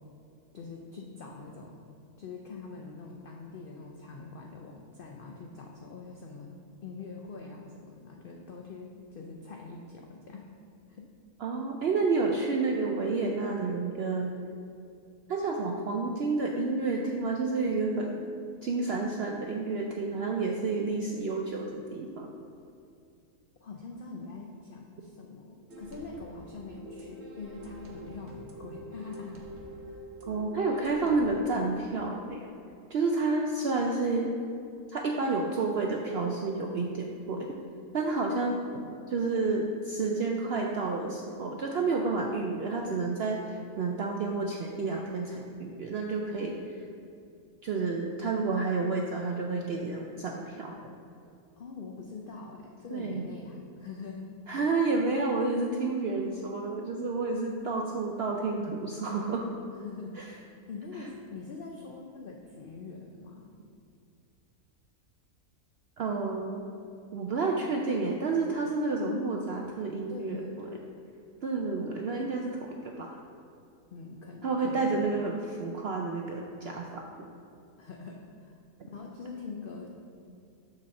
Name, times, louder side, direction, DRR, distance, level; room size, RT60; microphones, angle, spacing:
voice 1, 0.5-1.8 2.2-6.5 6.8-10.4 10.9-11.1 23.6-29.4 29.9-30.0 51.6-54.3 59.7-63.5 70.1-70.8 73.9-75.0 77.8-78.6 78.9-79.9, left 4 dB, 65° left, 0 dB, 0.5 m, -44 dB
voice 2, 11.4-14.4 15.3-18.2 18.6-22.3 30.3-32.5 32.9-34.3 34.9-37.5 37.9-46.8 47.6-50.9 52.9-53.2 54.5-59.5 60.2-60.3 66.0-66.6 67.1-70.4 71.4-73.2 74.4-77.3, right 3 dB, 75° right, 1 dB, 0.5 m, -30 dB
sound 1, 25.7-31.4, equal, 55° right, 1.0 m, -45 dB
6.2 x 4.2 x 6.4 m, 2.5 s
omnidirectional pair, 1.6 m